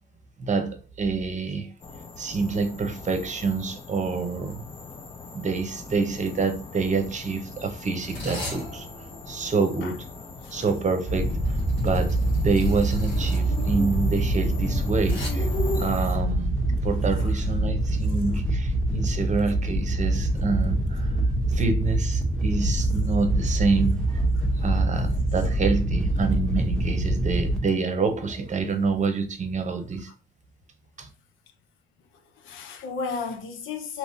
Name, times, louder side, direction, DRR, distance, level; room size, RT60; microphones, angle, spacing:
voice 1, 0.4-1.7 2.2-4.6 5.3-10.1 10.5-15.5 15.8-21.1 21.5-24.2 24.6-30.1 31.0-31.1, right 4 dB, 35° right, 0.8 m, -27 dB
sound 1, 1.8-16.1, left 3 dB, 25° left, 0.6 m, -40 dB
sound 2, 5.2-5.4 5.7-6.0 6.8-15.3, left 1 dB, 65° left, 1.4 m, -41 dB
voice 2, 10.4-10.7 17.2-17.3 21.4-21.5 32.4-34.0, left 5 dB, 80° left, 0.7 m, -34 dB
Wind / Boat Water vehicle, 11.1-27.6, right 1 dB, 5° left, 0.9 m, -25 dB
3.6 x 2.9 x 2.7 m
cardioid pair, 90°, 20 cm